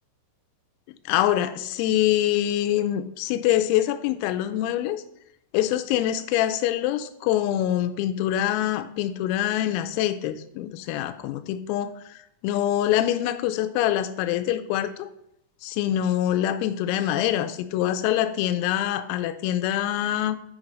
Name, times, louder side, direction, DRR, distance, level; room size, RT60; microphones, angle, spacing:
voice 1, 0.9-5.0 5.5-15.1 15.6-20.4, left 12 dB, 90° left, 10 dB, 3.4 m, -25 dB
7.2 x 7.2 x 5.2 m, 0.78 s
omnidirectional pair, 6.0 m